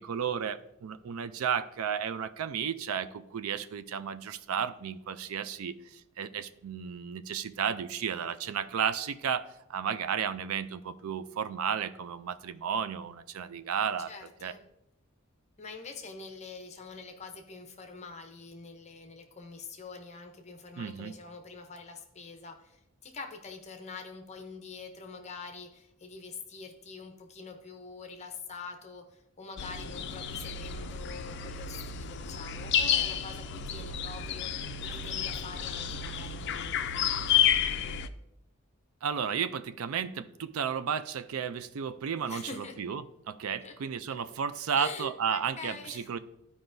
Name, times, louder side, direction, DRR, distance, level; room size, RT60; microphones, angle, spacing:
voice 1, 0.0-14.1 14.4-14.5 20.8-21.1 39.0-46.2, right 7 dB, 85° right, 12 dB, 0.4 m, -33 dB
voice 2, 14.1-14.6 15.6-38.0 42.3-42.8 43.6-43.7 44.8-46.1, left 4 dB, 30° left, 4 dB, 0.7 m, -45 dB
sound 1, 29.6-38.1, left 8 dB, 55° left, 0.4 m, -31 dB
12.5 x 4.8 x 2.6 m, 0.87 s
head